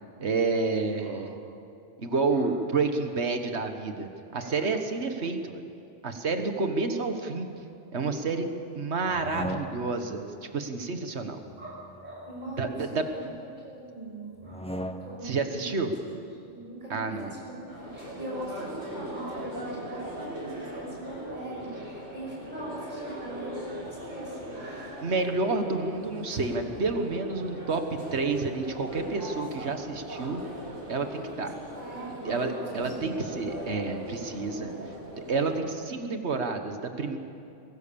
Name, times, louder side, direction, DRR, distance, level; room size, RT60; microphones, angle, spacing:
voice 1, 0.2-1.4 2.0-5.6 6.0-7.5 7.9-8.5 8.7-10.3 10.5-11.4 12.6-13.0 15.2-15.9 16.9-17.3 25.0-30.4 30.9-31.6 32.2-34.7 35.2-37.2, right 3 dB, 65° right, 7 dB, 1.7 m, -29 dB
voice 2, 4.4-4.7 6.9-7.2 9.2-9.6 11.6-13.2 13.6-15.9 16.4-25.0 31.7-32.9 33.2-33.3 34.2-34.7, right 1 dB, 35° right, -4 dB, 6.3 m, -41 dB
sound 1, 9.1-10.1 11.4-13.1 14.4-15.4, equal, 5° left, 0.6 m, -39 dB
sound 2, 17.7-35.6, equal, 80° right, 6.0 m, -40 dB
23.5 x 17.0 x 7.0 m, 2.7 s
omnidirectional pair, 1.3 m